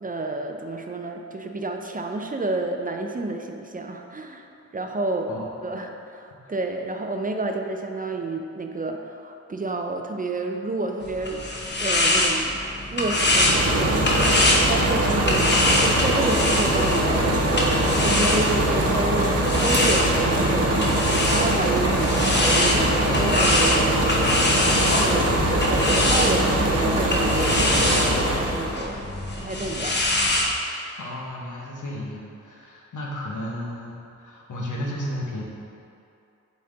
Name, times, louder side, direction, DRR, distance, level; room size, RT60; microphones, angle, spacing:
voice 1, 0.0-4.5 4.7-11.5 11.8-12.6 12.9-15.4 15.7-24.3 25.0-29.1 29.4-30.0, right 2 dB, 30° right, 4 dB, 0.4 m, -30 dB
voice 2, 5.3-5.8 31.0-35.4, left 1 dB, 90° left, -3 dB, 1.1 m, -33 dB
sound 1, 11.0-18.8 19.4-30.5, left 1 dB, 35° left, 0.8 m, -24 dB
sound 2, 13.0-28.8, right 1 dB, 55° right, 1.0 m, -22 dB
6.8 x 4.2 x 3.8 m, 2.7 s
wide cardioid pair, 120°, 30 cm